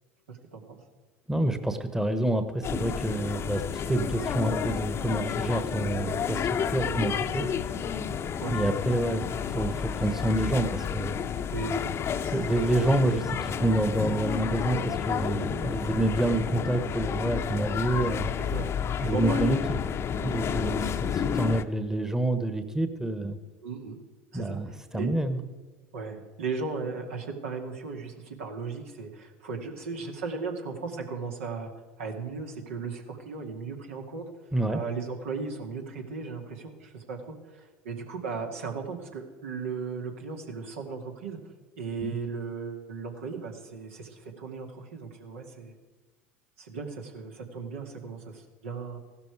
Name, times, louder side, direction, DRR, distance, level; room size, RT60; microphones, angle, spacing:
voice 1, 0.3-0.8 6.8-7.2 8.4-8.6 11.5-12.7 15.6-15.8 18.4-18.7 19.0-19.6 20.6-20.7 23.6-24.0 24.3-25.1 25.9-31.7 32.0-34.2 34.7-41.4 41.8-45.8 46.6-49.0, right 4 dB, 80° right, 2 dB, 2.2 m, -36 dB
voice 2, 1.3-7.5 8.5-11.2 12.3-18.3 19.0-19.6 20.2-23.4 24.3-25.4 34.5-34.8 42.0-42.1, right 1 dB, 5° right, 9 dB, 1.2 m, -28 dB
sound 1, 2.6-21.6, left 8 dB, 40° left, 0.8 m, -31 dB
15.5 x 12.5 x 4.8 m, 1.3 s
hypercardioid pair, 80°, 7 cm